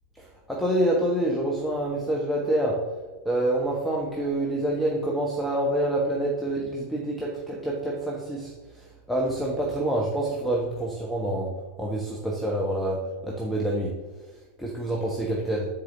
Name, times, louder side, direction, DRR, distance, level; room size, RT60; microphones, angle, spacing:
voice 1, 0.1-2.8 3.2-11.5 11.8-13.9 14.6-15.7, right 1 dB, 5° left, -3 dB, 1.4 m, -27 dB
6.9 x 4.9 x 6.8 m, 1.3 s
figure-of-eight pair, 90°, 0 cm